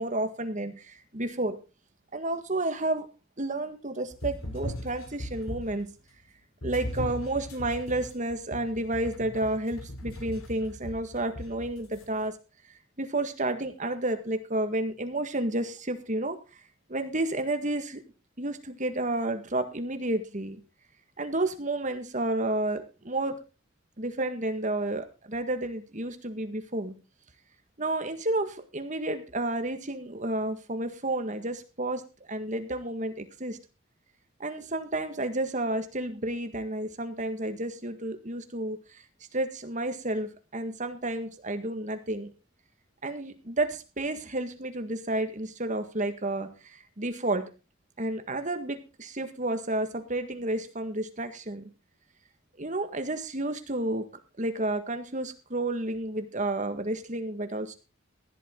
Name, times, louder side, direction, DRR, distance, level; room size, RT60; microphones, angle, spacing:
voice 1, 0.0-1.6 2.1-3.1 3.4-5.9 6.6-12.3 13.0-16.6 16.9-18.0 18.4-20.6 21.2-23.4 24.0-26.9 27.8-32.0 32.3-33.6 34.4-39.0 39.3-42.3 43.0-47.5 48.0-51.7 52.6-54.1 54.4-57.7, right 2 dB, 35° right, 8 dB, 1.8 m, -31 dB
sound 1, 4.1-5.9 6.6-12.0, left 1 dB, 90° left, 3.3 m, -39 dB
16.0 x 11.5 x 3.9 m, 0.31 s
head